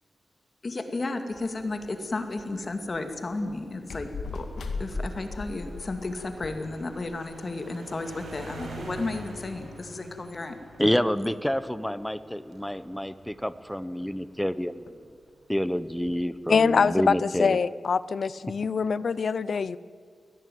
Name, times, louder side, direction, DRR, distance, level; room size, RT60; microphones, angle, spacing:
voice 1, 0.6-4.5 4.8-10.5, left 2 dB, 35° left, 7 dB, 2.3 m, -33 dB
sound 1, 1.3-6.6, left 3 dB, 80° left, 2.4 m, -38 dB
sound 2, 4.3-15.0 15.8-16.2, right 2 dB, 90° right, 5.9 m, -46 dB
voice 2, 10.8-15.0 15.5-17.6, equal, 5° left, 15 dB, 0.8 m, -28 dB
voice 3, 16.5-19.8, left 5 dB, 55° left, 18 dB, 0.6 m, -24 dB
23.0 x 17.5 x 9.3 m, 2.2 s
wide cardioid pair, 150°, 0 cm